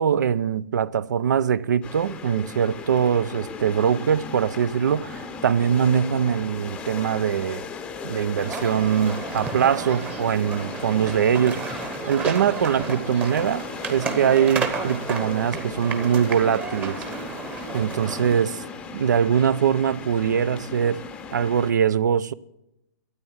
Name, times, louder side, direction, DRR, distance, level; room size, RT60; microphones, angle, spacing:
voice 1, 0.0-7.6 8.0-11.6 12.1-17.0 17.7-18.6 18.9-21.0 21.3-22.3, right 8 dB, 80° right, 0.6 m, -22 dB
sound 1, 1.8-21.7, left 4 dB, 10° left, 0.6 m, -37 dB
sound 2, 8.4-18.4, right 4 dB, 15° right, 1.0 m, -32 dB
13.0 x 9.2 x 7.2 m
hypercardioid pair, 160°, 10 cm